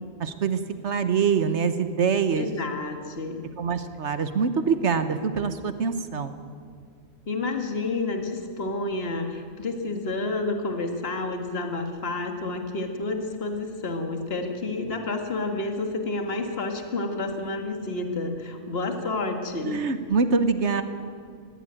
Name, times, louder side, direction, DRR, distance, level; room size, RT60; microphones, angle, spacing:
voice 1, 0.2-2.5 3.6-6.3 19.6-20.8, right 5 dB, 65° right, 10 dB, 1.4 m, -24 dB
voice 2, 2.3-3.5 7.3-19.8, left 2 dB, 50° left, 4 dB, 2.0 m, -30 dB
19.5 x 15.5 x 9.0 m, 2.2 s
omnidirectional pair, 1.3 m